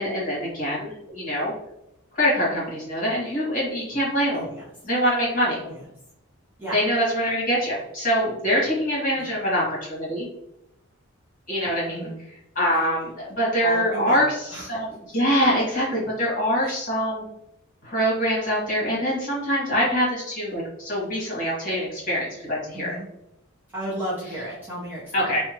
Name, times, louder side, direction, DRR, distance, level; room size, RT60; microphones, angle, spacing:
voice 1, 0.0-1.5 2.1-4.4 4.9-5.6 6.7-10.3 11.5-12.1 12.5-14.3 14.7-17.3 17.8-22.9 25.1-25.4, equal, 40° left, -6 dB, 1.3 m, -24 dB
voice 2, 4.3-4.6 5.6-5.8 6.6-6.8 9.2-9.3 11.9-12.2 13.6-14.7 16.6-16.8 22.7-23.1 23.7-25.3, right 1 dB, 10° right, -9 dB, 0.6 m, -32 dB
2.8 x 2.2 x 2.8 m, 0.82 s
head